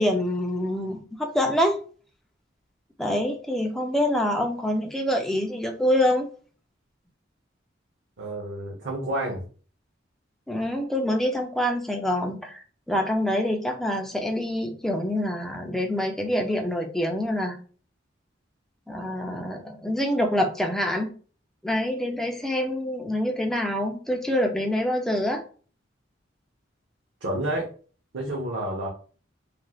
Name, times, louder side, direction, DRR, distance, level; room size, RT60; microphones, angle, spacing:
voice 1, 0.0-1.8 3.0-6.3 10.5-17.6 18.9-21.1 21.6-25.4, left 1 dB, ahead, 2 dB, 0.4 m, -26 dB
voice 2, 8.2-9.4 27.2-27.7 28.1-28.9, right 1 dB, 70° right, -4 dB, 0.8 m, -29 dB
3.1 x 2.5 x 2.3 m, 0.40 s
head